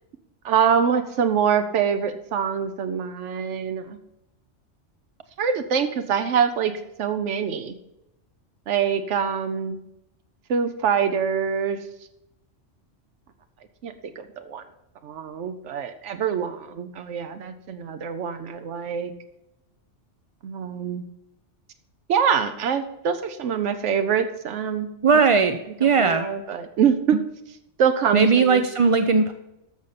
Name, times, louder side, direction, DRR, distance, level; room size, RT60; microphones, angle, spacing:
voice 1, 0.4-4.0 5.4-6.7 7.0-7.7 8.7-9.8 10.5-11.8 13.8-14.6 15.0-19.1 20.4-21.0 22.1-25.2 25.8-27.2 27.8-28.6, right 7 dB, 85° right, 8 dB, 1.1 m, -24 dB
voice 2, 25.0-26.3 28.1-29.3, right 5 dB, 50° right, 8 dB, 0.4 m, -18 dB
13.5 x 6.5 x 4.1 m, 0.87 s
omnidirectional pair, 1.2 m